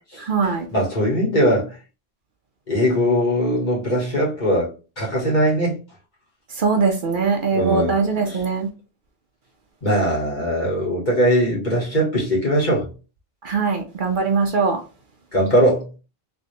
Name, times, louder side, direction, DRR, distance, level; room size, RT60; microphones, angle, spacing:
voice 1, 0.2-0.7 6.6-8.7 13.4-14.8, right 4 dB, 55° right, 0.8 m, -21 dB
voice 2, 0.7-1.7 2.7-4.7 5.0-5.8 7.5-7.9 8.3-8.4 9.8-12.9 15.3-15.9, equal, 45° left, 1.6 m, -20 dB
3.2 x 3.0 x 2.7 m
omnidirectional pair, 1.1 m